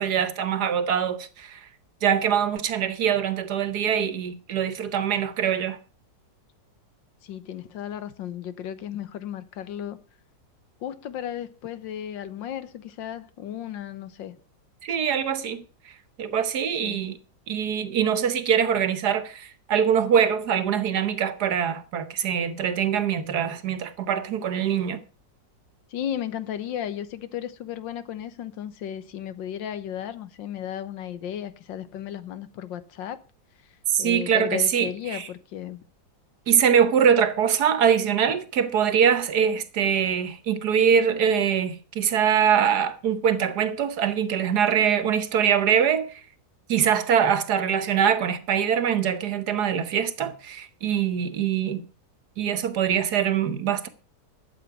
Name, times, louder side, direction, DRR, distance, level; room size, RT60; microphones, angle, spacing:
voice 1, 0.0-1.6 2.0-5.8 14.8-15.6 16.2-17.2 17.5-25.0 33.9-35.3 36.5-46.1 46.7-51.8 52.4-53.9, right 8 dB, 65° right, 1.5 m, -23 dB
voice 2, 7.2-10.0 10.8-14.4 16.8-17.0 25.9-33.2 34.0-35.8, left 10 dB, 90° left, 1.7 m, -34 dB
12.0 x 8.3 x 5.8 m
omnidirectional pair, 2.0 m